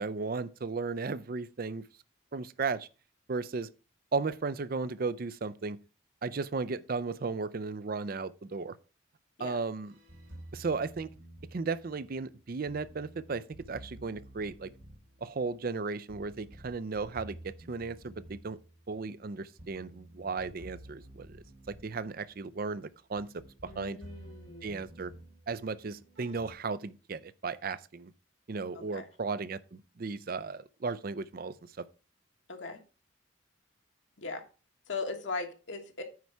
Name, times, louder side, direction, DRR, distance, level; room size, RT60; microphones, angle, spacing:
voice 1, 0.0-1.8 2.3-2.9 3.3-3.7 4.1-5.8 6.2-8.8 9.4-9.9 10.5-11.1 11.5-14.7 15.2-18.6 18.9-21.4 21.7-24.0 24.6-25.1 25.5-28.1 28.5-31.9, right 4 dB, 45° right, 0.5 m, -35 dB
sound 1, 9.8-26.6, right 1 dB, 80° right, 4.6 m, -52 dB
voice 2, 23.6-24.8 28.7-29.1 32.5-32.8 34.2-34.4 34.9-36.0, left 3 dB, 70° left, 1.4 m, -39 dB
9.5 x 4.7 x 5.5 m
head